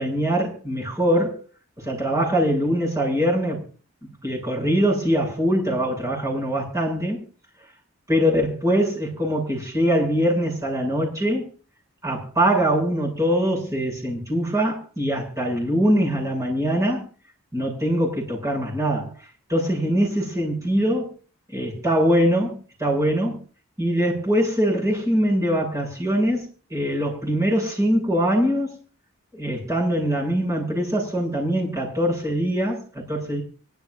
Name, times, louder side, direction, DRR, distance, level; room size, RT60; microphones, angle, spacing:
voice 1, 0.0-1.4 1.8-3.6 4.2-7.2 8.1-11.4 12.0-17.1 17.5-19.1 19.5-21.1 21.5-23.4 23.8-28.7 29.3-33.4, equal, 15° right, -4 dB, 7.9 m, -23 dB
25.0 x 13.0 x 2.7 m, 0.38 s
head